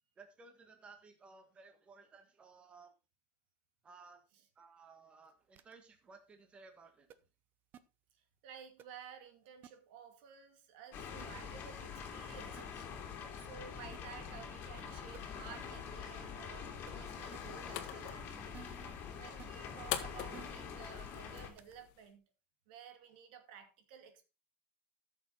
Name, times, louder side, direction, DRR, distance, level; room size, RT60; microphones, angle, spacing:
voice 1, 0.2-2.9 3.8-4.2 4.6-7.1, right 4 dB, 20° right, 1.6 m, -58 dB
sound 1, 5.6-5.7 7.1-7.2 7.7-7.8 8.8-8.9 9.6-9.7 11.2-11.3 12.6-12.7 13.9-14.0 14.8-14.9 15.1-15.2 16.9-17.0 17.3-17.4 18.5-19.0 19.4-19.5 20.3-20.7 21.6-21.7, right 9 dB, 35° right, 0.8 m, -53 dB
voice 2, 8.4-12.9 13.4-18.5 19.1-22.2 22.7-24.2, right 7 dB, 75° right, 2.4 m, -54 dB
sound 2, 10.9-21.5, left 7 dB, 40° left, 2.4 m, -45 dB
sound 3, 17.1-22.1, left 12 dB, 65° left, 1.5 m, -46 dB
13.0 x 6.6 x 4.0 m
supercardioid pair, 150°, 5 cm